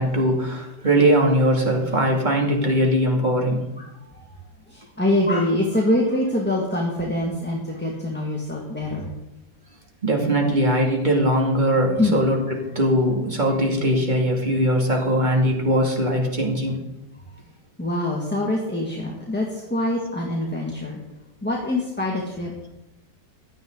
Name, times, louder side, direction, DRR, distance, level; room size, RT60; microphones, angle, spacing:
voice 1, 0.0-3.6 10.0-16.8, right 1 dB, 25° right, 0 dB, 2.7 m, -20 dB
voice 2, 4.7-9.1 12.0-12.2 17.8-21.0 21.4-22.5, left 1 dB, 5° left, -2 dB, 1.9 m, -24 dB
16.5 x 11.5 x 3.9 m, 0.96 s
omnidirectional pair, 1.9 m